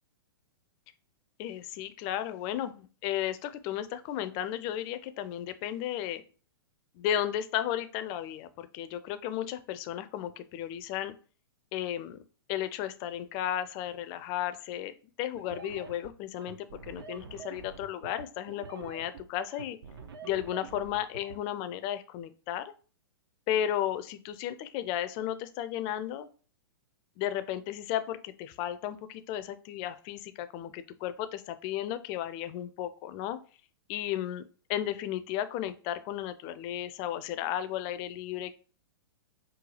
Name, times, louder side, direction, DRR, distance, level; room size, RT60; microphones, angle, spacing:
voice 1, 1.4-6.2 7.0-11.1 11.7-12.2 12.5-19.8 20.2-22.7 23.5-26.3 27.2-33.4 33.9-34.4 34.7-38.5, left 11 dB, 35° left, 12 dB, 0.4 m, -34 dB
sound 1, 15.4-21.4, right 5 dB, 65° right, 0.6 m, -46 dB
3.8 x 2.3 x 3.2 m, 0.38 s
figure-of-eight pair, 110°, 13 cm